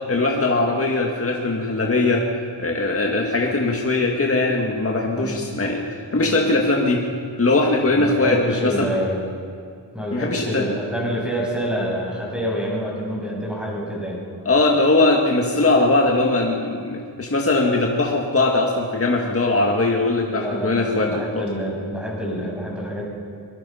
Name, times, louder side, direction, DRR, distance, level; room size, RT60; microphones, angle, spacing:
voice 1, 0.1-2.3 2.6-5.8 6.1-7.0 7.4-8.9 10.1-10.7 14.5-21.4, left 2 dB, 30° left, 0 dB, 1.8 m, -20 dB
voice 2, 7.9-9.2 9.9-14.2 20.3-23.0, equal, ahead, -4 dB, 7.3 m, -27 dB
23.0 x 22.0 x 5.7 m, 2.3 s
wide cardioid pair, 115°, 43 cm